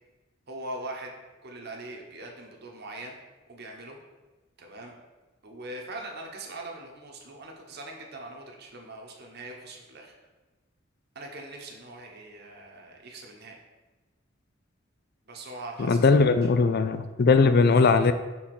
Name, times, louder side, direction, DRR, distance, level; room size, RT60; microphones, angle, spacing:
voice 1, 0.5-1.1 1.4-3.1 3.5-4.0 4.6-4.9 5.4-10.1 11.1-13.6 15.2-16.0, right 2 dB, 55° right, 1 dB, 1.1 m, -41 dB
voice 2, 15.8-18.1, left 4 dB, 50° left, 10 dB, 0.4 m, -20 dB
6.2 x 3.8 x 6.0 m, 1.2 s
head